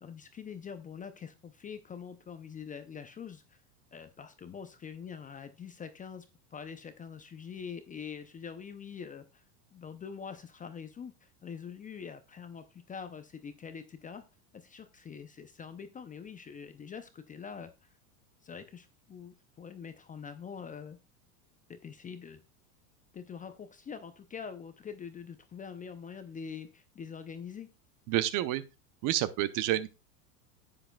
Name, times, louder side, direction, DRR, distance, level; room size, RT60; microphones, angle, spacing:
voice 1, 0.0-3.6 3.9-6.3 6.5-9.4 9.7-14.2 14.5-17.7 18.4-21.0 21.7-22.4 23.1-27.7, left 6 dB, 15° left, 0.5 m, -44 dB
voice 2, 28.1-28.6 29.0-29.9, right 13 dB, 40° right, 0.8 m, -29 dB
10.0 x 7.8 x 2.3 m
hypercardioid pair, 105°, 47 cm